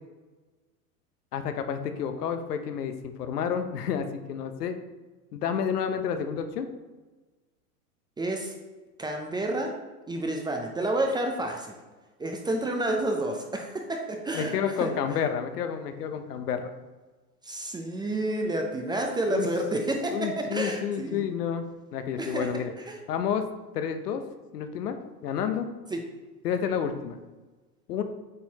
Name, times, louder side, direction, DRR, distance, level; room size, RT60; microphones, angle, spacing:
voice 1, 1.3-4.7 5.3-6.7 14.3-16.7 19.3-19.5 20.1-21.7 21.9-22.7 23.1-23.5 23.7-24.2 24.5-25.7 26.4-27.2 27.9-28.0, left 7 dB, 80° left, 8 dB, 0.9 m, -30 dB
voice 2, 8.2-8.5 9.0-9.7 10.1-11.7 12.2-14.9 17.4-21.2 22.2-23.0 25.9-26.0, right 1 dB, 10° right, 2 dB, 0.5 m, -30 dB
8.5 x 4.4 x 2.8 m, 1.3 s
hypercardioid pair, 105°, 46 cm